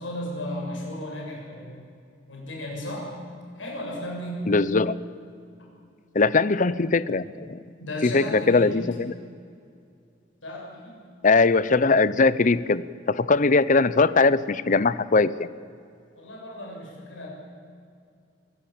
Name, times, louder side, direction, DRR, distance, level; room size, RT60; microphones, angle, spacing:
voice 1, 0.0-1.8 2.3-3.1 3.6-4.5 7.8-8.7 10.4-11.0 16.2-17.3, left 1 dB, 85° left, -2 dB, 7.1 m, -34 dB
voice 2, 4.5-5.0 6.1-7.6 8.0-9.1 11.2-15.5, left 3 dB, 45° left, 17 dB, 0.7 m, -21 dB
24.0 x 15.5 x 8.8 m, 2.3 s
head